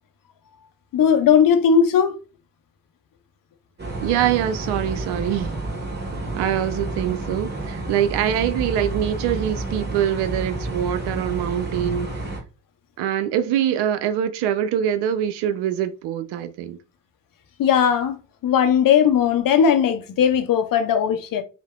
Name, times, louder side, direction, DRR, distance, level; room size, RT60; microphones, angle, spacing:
voice 1, 0.9-2.1 17.6-18.2 18.4-21.4, left 7 dB, 50° left, 0.6 m, -18 dB
sound 1, 3.8-12.4, right 2 dB, 25° right, 1.3 m, -30 dB
voice 2, 4.0-5.5 6.3-12.1 13.0-16.8, right 10 dB, 65° right, 0.5 m, -24 dB
3.2 x 2.0 x 2.2 m
hypercardioid pair, 45°, 43 cm